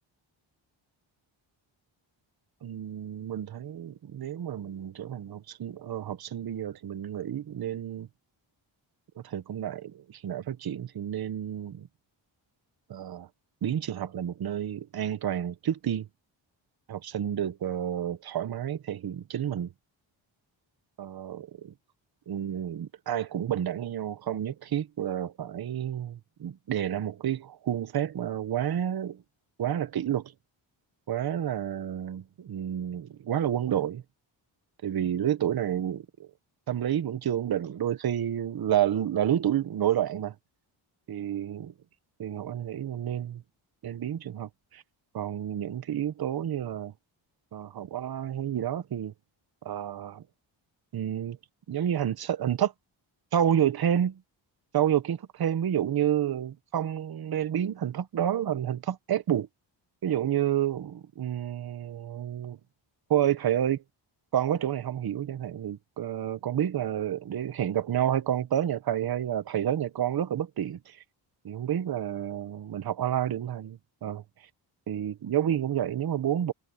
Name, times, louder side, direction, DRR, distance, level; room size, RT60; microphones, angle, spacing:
voice 1, 2.6-8.1 9.2-11.9 12.9-13.3 13.6-16.1 16.9-19.7 21.0-21.5 22.3-29.2 29.6-30.3 31.1-34.0 34.8-36.3 36.7-40.3 41.1-41.7 42.2-43.4 43.8-44.8 45.1-46.9 47.5-49.1 49.6-50.2 50.9-51.4 51.7-52.7 53.3-54.2 54.7-59.5 60.0-62.6 63.1-63.8 64.3-71.0 71.4-74.2 74.9-76.5, right 10 dB, 50° right, 0.9 m, -30 dB
wide cardioid pair, 165°, 48 cm